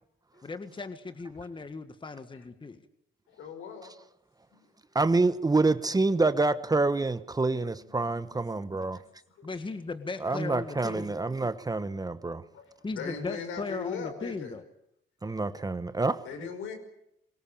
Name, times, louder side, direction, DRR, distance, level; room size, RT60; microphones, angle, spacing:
voice 1, 0.4-2.8 9.4-11.1 12.8-14.6 16.4-16.5, left 3 dB, 25° left, 1.7 m, -37 dB
voice 2, 3.3-3.9 7.8-8.4 8.9-9.0 9.4-9.7 12.5-12.6 12.9-14.5 16.2-16.7, left 6 dB, 85° left, 5.5 m, -39 dB
voice 3, 4.9-9.0 10.2-12.4 15.2-16.2, right 3 dB, 20° right, 1.1 m, -27 dB
23.0 x 18.5 x 8.9 m
cardioid pair, 90°, 20 cm